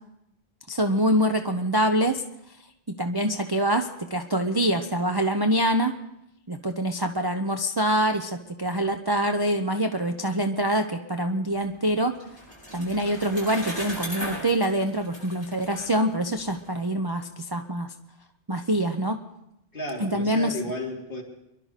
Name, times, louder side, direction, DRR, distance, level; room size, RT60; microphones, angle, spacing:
voice 1, 0.7-2.2 2.9-5.9 6.5-12.2 12.7-17.9 18.5-19.2 20.0-20.6, right 1 dB, 25° right, 4 dB, 0.6 m, -25 dB
Bicycle, 11.6-16.7, equal, 10° left, 8.1 m, -38 dB
voice 2, 19.7-21.2, left 1 dB, 45° left, -2 dB, 3.1 m, -33 dB
25.5 x 12.0 x 4.2 m, 0.84 s
omnidirectional pair, 1.2 m